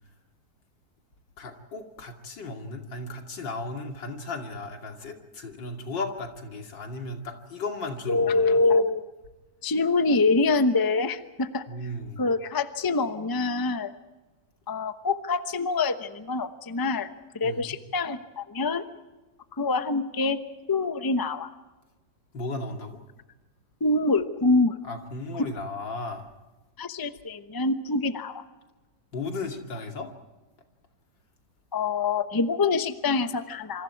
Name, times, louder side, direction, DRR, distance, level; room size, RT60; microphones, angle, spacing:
voice 1, 1.4-8.6 11.7-12.2 17.4-17.8 22.3-23.0 24.8-26.3 29.1-30.1, left 2 dB, 85° left, 3 dB, 3.3 m, -35 dB
voice 2, 8.1-9.0 9.6-11.6 12.2-13.9 14.7-18.8 19.6-20.4 20.7-21.5 23.8-24.8 26.8-28.4 31.7-33.8, left 3 dB, 15° left, 10 dB, 0.7 m, -25 dB
27.0 x 26.0 x 4.7 m, 1.1 s
omnidirectional pair, 1.9 m